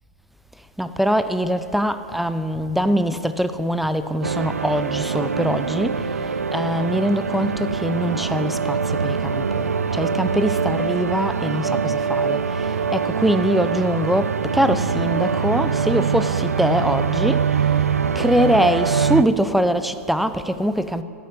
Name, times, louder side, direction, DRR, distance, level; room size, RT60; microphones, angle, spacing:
voice 1, 0.8-6.2 6.5-17.5 18.1-21.0, equal, ahead, 12 dB, 0.6 m, -23 dB
sound 1, 2.1-2.2 2.5-2.6 3.8-3.9 4.2-4.3 5.5-5.6 6.0-6.1 7.2-7.3 7.7-7.8 9.0-9.1 9.4-9.5 10.7-10.8 11.1-11.2 12.4-12.5 12.8-12.9 14.1-14.2 14.5-14.6, left 8 dB, 35° left, 3.2 m, -41 dB
sound 2, 4.2-19.2, right 6 dB, 80° right, 0.5 m, -23 dB
13.5 x 8.5 x 9.3 m, 2.4 s
figure-of-eight pair, 105°, 8 cm